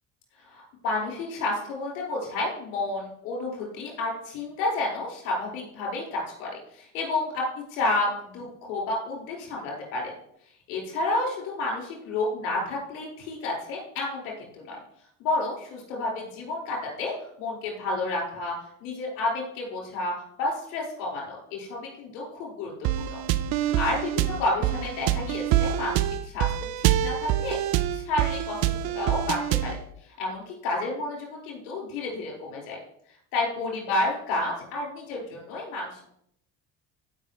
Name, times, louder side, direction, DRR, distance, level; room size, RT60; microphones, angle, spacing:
voice 1, 0.4-10.1 10.7-14.8 15.2-18.5 18.8-22.7 23.0-23.2 23.7-26.5 26.8-27.6 27.9-29.8 30.2-32.8 33.3-36.0, left 2 dB, 75° left, -2 dB, 4.7 m, -30 dB
sound 1, 22.8-29.8, right 12 dB, 65° right, 0.7 m, -26 dB
16.5 x 5.9 x 3.1 m, 0.71 s
hypercardioid pair, 65°, 39 cm